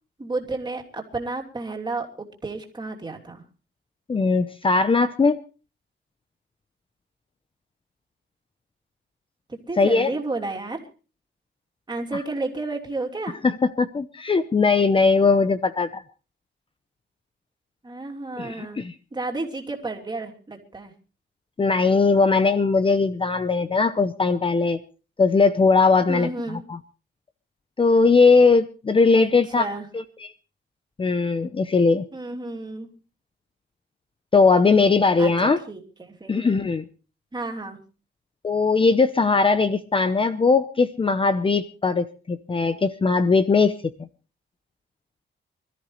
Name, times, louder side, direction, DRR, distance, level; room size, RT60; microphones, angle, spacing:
voice 1, 0.2-3.4 9.5-10.8 11.9-13.4 17.8-18.8 19.1-20.9 26.1-26.6 29.1-29.3 29.6-29.9 32.1-32.9 35.2-35.3 35.7-36.3 37.3-37.8, right 3 dB, 20° right, 1 dB, 3.0 m, -31 dB
voice 2, 4.1-5.4 9.8-10.1 13.4-16.0 18.4-18.9 21.6-24.8 25.2-26.8 27.8-29.6 29.9-30.3 31.0-32.0 34.3-35.6 36.3-36.9 38.4-44.1, left 4 dB, 25° left, 11 dB, 0.8 m, -20 dB
25.5 x 13.5 x 3.2 m, 0.35 s
wide cardioid pair, 135°, 21 cm